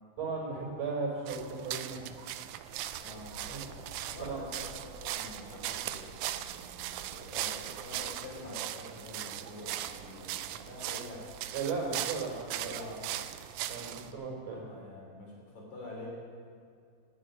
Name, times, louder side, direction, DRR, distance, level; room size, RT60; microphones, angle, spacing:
voice 1, 0.2-2.1 3.5-3.6 4.2-4.4 11.5-12.8 13.7-14.6, right 4 dB, 65° right, -6 dB, 5.6 m, -36 dB
sound 1, 1.3-14.1, right 13 dB, 85° right, 2.0 m, -39 dB
sound 2, 2.7-8.1, equal, 40° right, 2.9 m, -54 dB
voice 2, 3.0-4.7 4.9-11.3 11.9-12.0 12.6-13.2 13.9-14.0 14.3-16.1, left 1 dB, 75° left, -3 dB, 5.4 m, -46 dB
11.0 x 9.5 x 9.9 m, 2.2 s
omnidirectional pair, 3.4 m